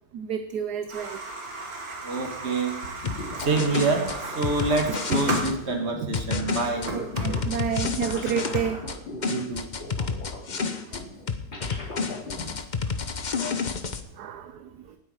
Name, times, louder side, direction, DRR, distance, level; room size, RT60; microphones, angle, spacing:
voice 1, 0.1-1.2 6.0-6.1 6.9-8.8 10.9-11.0 14.2-14.7, right 8 dB, 65° right, 1.2 m, -30 dB
sound 1, 0.9-6.0 6.4-9.0, right 3 dB, 85° right, 3.2 m, -36 dB
voice 2, 2.0-2.7 3.4-6.9 9.3-9.6, right 3 dB, 35° right, 1.9 m, -26 dB
sound 2, 2.8-12.5, left 2 dB, 80° left, 4.6 m, -39 dB
sound 3, 3.0-5.5 6.1-9.0 9.2-11.0 11.3-14.0, left 5 dB, 40° left, 0.6 m, -29 dB
18.5 x 8.4 x 4.9 m
omnidirectional pair, 2.0 m